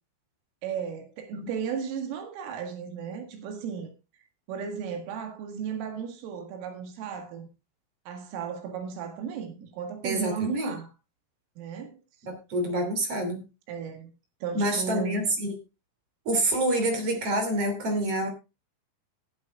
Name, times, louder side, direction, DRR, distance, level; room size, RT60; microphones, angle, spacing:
voice 1, 0.6-3.9 4.5-7.5 8.1-10.9 11.6-11.9 13.7-14.1 14.4-15.2, right 7 dB, 90° right, 4.4 m, -35 dB
voice 2, 10.0-10.7 12.3-13.4 14.5-15.5 16.2-18.3, right 1 dB, 35° right, 3.1 m, -27 dB
21.0 x 8.3 x 2.4 m
omnidirectional pair, 5.6 m